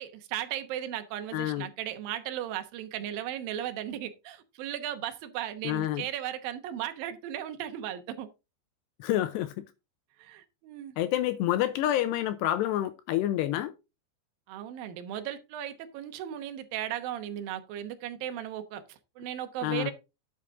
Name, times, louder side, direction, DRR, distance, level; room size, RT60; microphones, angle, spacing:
voice 1, 0.0-8.3 10.2-10.9 14.5-19.9, right 11 dB, 70° right, 2.3 m, -36 dB
voice 2, 1.3-1.7 5.6-6.1 9.0-9.7 11.0-13.7 19.6-19.9, left 13 dB, 80° left, 2.6 m, -28 dB
11.0 x 6.7 x 3.6 m
omnidirectional pair, 5.2 m